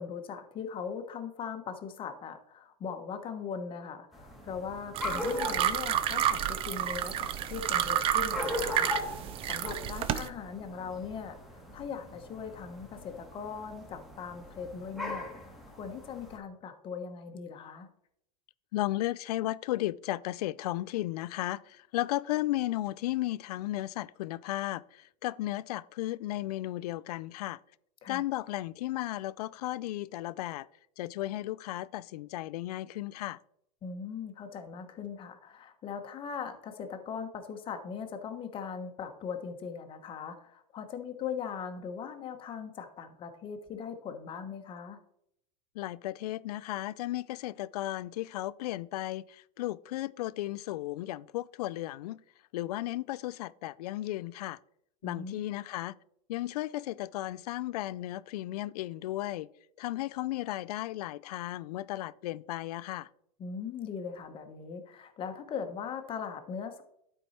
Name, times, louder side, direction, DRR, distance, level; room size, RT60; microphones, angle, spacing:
voice 1, 0.0-9.2 9.5-11.4 11.7-15.3 15.8-17.9 28.0-28.2 33.8-45.0 55.0-55.4 63.4-66.8, left 6 dB, 25° left, 1.0 m, -40 dB
sound 1, 4.1-16.4, left 1 dB, ahead, 1.5 m, -40 dB
sound 2, 4.9-10.3, right 10 dB, 25° right, 0.5 m, -30 dB
voice 2, 18.7-27.6 28.1-30.7 31.0-33.4 45.8-52.2 52.5-54.6 55.0-55.9 56.3-59.5 59.8-63.1, left 16 dB, 70° left, 0.4 m, -34 dB
11.5 x 4.6 x 4.2 m
supercardioid pair, 140°, 21 cm